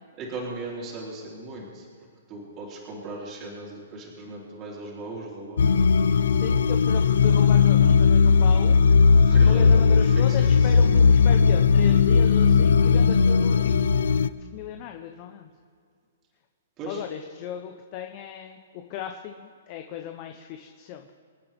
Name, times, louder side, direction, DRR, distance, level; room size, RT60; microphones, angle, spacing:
voice 1, 0.2-1.9 2.3-5.7 9.2-10.0 10.4-10.5 16.8-17.0, right 2 dB, 25° right, -3 dB, 3.5 m, -37 dB
sound 1, 5.6-14.3, left 5 dB, 75° left, 0.6 m, -18 dB
voice 2, 6.3-8.8 9.4-13.7 14.5-15.5 16.9-21.1, left 10 dB, 35° left, 5 dB, 0.9 m, -36 dB
27.0 x 9.3 x 3.6 m, 2.2 s
hypercardioid pair, 155°, 0 cm